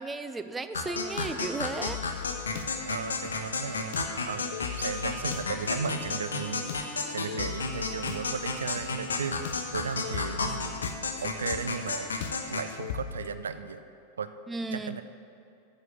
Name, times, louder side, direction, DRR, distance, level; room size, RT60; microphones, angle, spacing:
voice 1, 0.0-2.0 14.5-15.0, right 3 dB, 15° right, 11 dB, 0.4 m, -34 dB
sound 1, 0.7-12.7, left 4 dB, 70° left, 0.9 m, -33 dB
sound 2, 0.8-13.3, left 9 dB, 55° left, 0.4 m, -41 dB
voice 2, 2.8-4.0 4.3-9.5 9.7-10.8 11.2-12.1 12.5-13.8 14.2-14.3 14.7-15.0, right 6 dB, 70° right, 11 dB, 0.4 m, -35 dB
9.3 x 6.7 x 6.9 m, 2.5 s
figure-of-eight pair, 90°, 0 cm